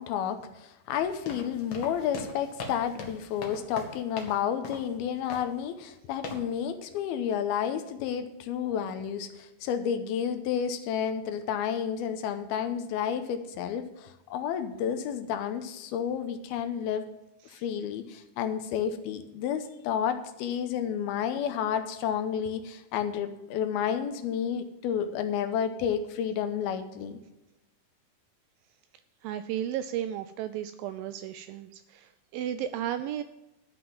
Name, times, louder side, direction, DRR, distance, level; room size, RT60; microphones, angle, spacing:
voice 1, 0.0-17.1 17.4-27.2, left 8 dB, 80° left, 9 dB, 2.7 m, -31 dB
sound 1, 1.0-4.4 4.6-4.9 5.3-5.6 6.2-6.5, left 3 dB, 65° left, 1.2 m, -40 dB
voice 2, 29.2-33.2, right 11 dB, 85° right, 11 dB, 2.1 m, -34 dB
12.0 x 6.0 x 7.2 m, 0.98 s
omnidirectional pair, 4.5 m